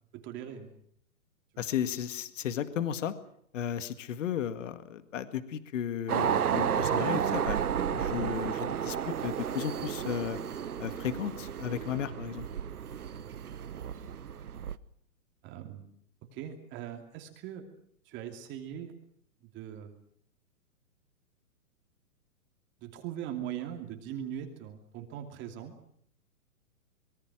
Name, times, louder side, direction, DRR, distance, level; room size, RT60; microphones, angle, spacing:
voice 1, 0.1-0.7 1.5-1.6 15.4-15.9 16.2-17.6 18.1-18.9 19.5-20.0 22.8-25.7, right 10 dB, 25° right, 4 dB, 2.7 m, -40 dB
voice 2, 1.6-3.1 3.5-7.6 7.9-10.4 10.8-12.5, left 9 dB, 60° left, 12 dB, 2.0 m, -34 dB
sound 1, 6.1-14.8, right 8 dB, 85° right, 1.3 m, -32 dB
25.0 x 23.0 x 6.3 m, 0.67 s
hypercardioid pair, 140°, 43 cm